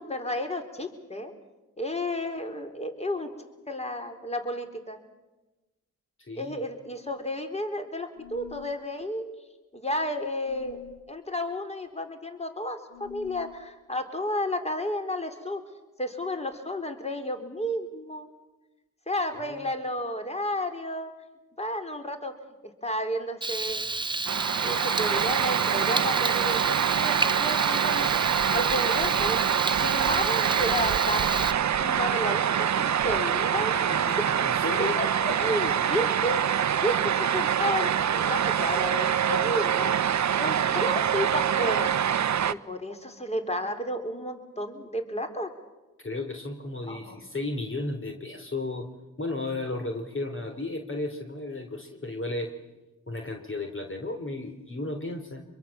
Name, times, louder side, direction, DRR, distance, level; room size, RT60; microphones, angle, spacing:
voice 1, 0.0-1.3 1.8-3.3 3.7-5.0 6.4-9.2 9.7-10.8 11.1-15.6 16.0-18.3 19.1-21.1 21.6-22.3 22.6-23.8 24.1-24.3 24.6-28.1 28.5-29.4 29.8-31.4 31.8-33.7 34.8-36.4 36.8-40.0 40.4-41.9 42.5-45.5 46.9-47.3, left 1 dB, 15° left, 5 dB, 4.1 m, -32 dB
voice 2, 6.3-6.6 19.5-19.6 33.7-35.0 35.3-35.6 46.0-48.9 49.2-52.5 53.1-55.4, left 2 dB, 35° left, 4 dB, 3.6 m, -34 dB
sound 1, 8.1-8.8 10.4-11.0 12.9-13.6, left 14 dB, 65° left, 2.9 m, -46 dB
Frying (food), 23.4-31.5, right 2 dB, 15° right, 0.8 m, -30 dB
sound 2, 24.3-42.5, right 9 dB, 50° right, 0.9 m, -25 dB
25.5 x 22.5 x 7.3 m, 1.1 s
supercardioid pair, 50°, 36 cm